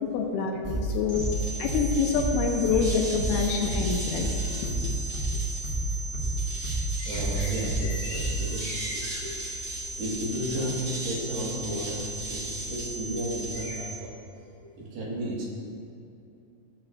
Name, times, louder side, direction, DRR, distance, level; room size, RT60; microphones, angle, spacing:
voice 1, 0.0-1.2 1.6-4.3 4.6-4.9, left 6 dB, 75° left, 1 dB, 2.5 m, -27 dB
sound 1, 0.6-8.6, right 2 dB, 25° left, 1.5 m, -30 dB
sound 2, 1.1-14.0, right 1 dB, 55° right, 2.6 m, -36 dB
sound 3, 2.7-13.8, left 2 dB, 60° left, 2.1 m, -43 dB
voice 2, 7.1-9.4 9.9-14.1 14.8-15.5, right 1 dB, 80° right, -4 dB, 3.8 m, -33 dB
15.0 x 8.2 x 2.4 m, 2.7 s
omnidirectional pair, 4.8 m